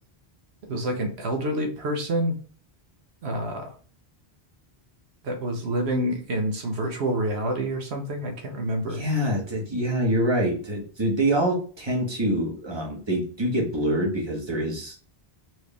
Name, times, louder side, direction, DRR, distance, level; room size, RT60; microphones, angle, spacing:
voice 1, 0.7-2.3 3.2-3.7 5.2-9.0, right 1 dB, 85° right, 4 dB, 1.2 m, -27 dB
voice 2, 8.9-15.0, right 1 dB, 25° right, -1 dB, 1.4 m, -25 dB
4.6 x 3.1 x 3.3 m, 0.41 s
omnidirectional pair, 1.1 m